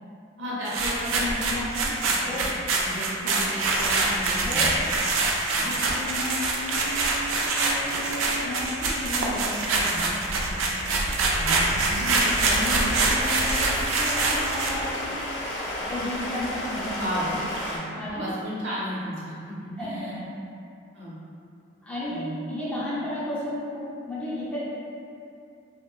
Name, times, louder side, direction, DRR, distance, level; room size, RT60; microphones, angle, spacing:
voice 1, 0.4-1.9 2.2-2.5 2.8-4.6 5.5-5.7 8.2-8.3 10.3-10.4 16.9-17.2 17.7-20.1 20.9-21.2 22.1-22.4, equal, 70° right, -9 dB, 0.8 m, -34 dB
sound 1, 0.6-14.9, right 3 dB, 85° right, 0.3 m, -25 dB
voice 2, 2.3-2.6 4.4-5.0 5.5-10.9 11.4-15.4 15.8-17.4 17.9-18.2 19.8-20.3 21.8-24.6, left 1 dB, 5° left, -10 dB, 0.4 m, -34 dB
Stream, 12.2-17.8, left 1 dB, 85° left, 0.5 m, -32 dB
2.8 x 2.1 x 2.3 m, 2.4 s
head